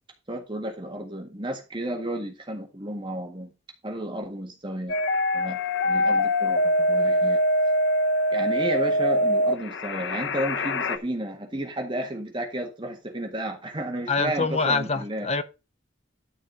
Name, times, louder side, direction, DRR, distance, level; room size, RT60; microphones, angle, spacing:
voice 1, 0.3-3.5 3.8-5.0 5.3-7.4 8.3-15.3, right 1 dB, 25° right, 1.7 m, -32 dB
sound 1, 4.9-11.0, equal, 65° left, 1.0 m, -23 dB
voice 2, 14.1-15.4, left 4 dB, 35° left, 1.0 m, -25 dB
12.5 x 4.5 x 5.5 m
head